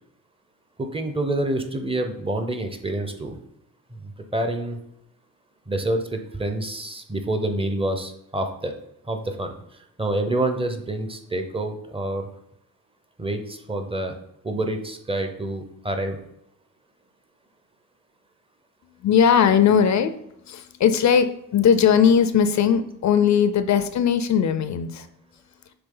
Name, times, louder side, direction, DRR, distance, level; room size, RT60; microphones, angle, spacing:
voice 1, 0.8-3.4 3.9-4.8 5.7-8.8 9.0-9.6 10.0-12.3 13.2-14.1 14.4-16.2, right 1 dB, 15° right, 6 dB, 0.7 m, -27 dB
voice 2, 19.0-20.1 20.5-25.1, left 7 dB, 55° left, 11 dB, 0.5 m, -19 dB
6.8 x 4.0 x 3.8 m, 0.77 s
cardioid pair, 120°, 34 cm